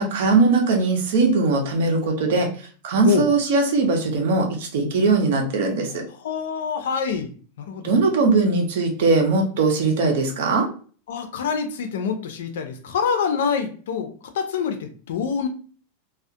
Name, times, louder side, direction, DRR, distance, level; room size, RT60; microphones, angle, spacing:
voice 1, 0.0-2.5 2.8-6.0 7.8-10.7, right 3 dB, 70° right, 2 dB, 0.7 m, -20 dB
voice 2, 6.2-8.0 11.1-15.5, left 6 dB, 80° left, 7 dB, 0.5 m, -26 dB
2.3 x 2.0 x 2.6 m, 0.41 s
supercardioid pair, 150°, 0 cm